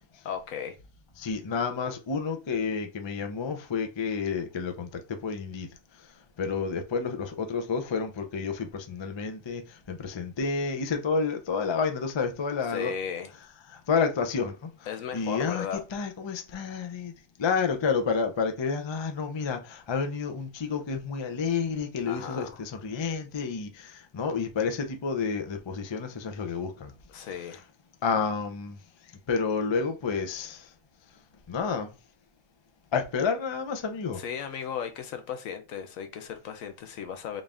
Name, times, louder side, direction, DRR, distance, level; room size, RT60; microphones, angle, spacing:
voice 1, 0.2-0.8 12.7-13.3 14.9-15.8 22.1-22.6 27.1-27.6 34.1-37.4, left 7 dB, 90° left, 1.1 m, -36 dB
voice 2, 1.2-5.7 6.4-9.6 9.9-12.9 13.7-14.7 15.1-15.7 15.9-17.1 17.4-26.9 28.0-28.8 29.3-30.6 31.5-31.9 32.9-34.2, left 5 dB, 45° left, 0.3 m, -30 dB
3.9 x 2.5 x 3.4 m
omnidirectional pair, 1.4 m